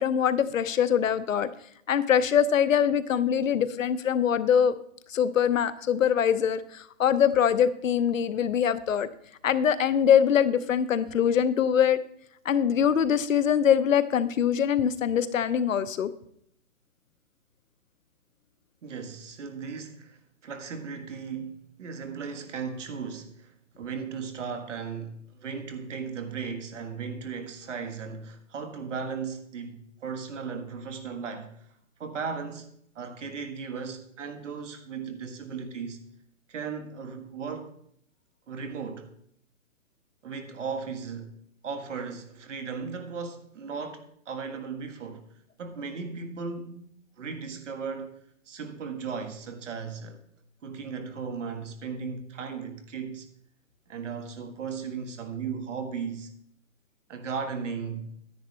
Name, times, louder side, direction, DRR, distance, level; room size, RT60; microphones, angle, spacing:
voice 1, 0.0-1.5 1.9-4.7 5.1-9.1 9.4-12.0 12.4-16.1, left 8 dB, 75° left, 0.9 m, -23 dB
voice 2, 18.8-31.7 32.0-32.7 32.9-36.0 36.5-37.7 38.5-39.1 40.2-41.3 41.6-45.2 45.6-46.9 47.2-48.2 48.5-50.2 50.6-53.3 53.9-56.3 57.1-58.1, right 5 dB, 65° right, 1.6 m, -36 dB
10.0 x 9.2 x 3.3 m
hypercardioid pair, 165°, 40 cm